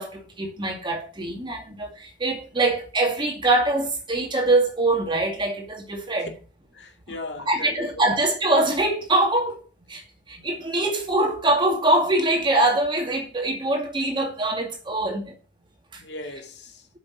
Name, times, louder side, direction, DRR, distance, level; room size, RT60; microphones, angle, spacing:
voice 1, 0.0-6.3 7.5-9.6 9.9-10.0 10.3-15.4 15.9-16.0, right 2 dB, 25° right, 2.3 m, -23 dB
voice 2, 6.7-8.1 10.4-10.5 16.0-16.9, left 2 dB, 65° left, 2.2 m, -38 dB
8.5 x 6.4 x 7.7 m
head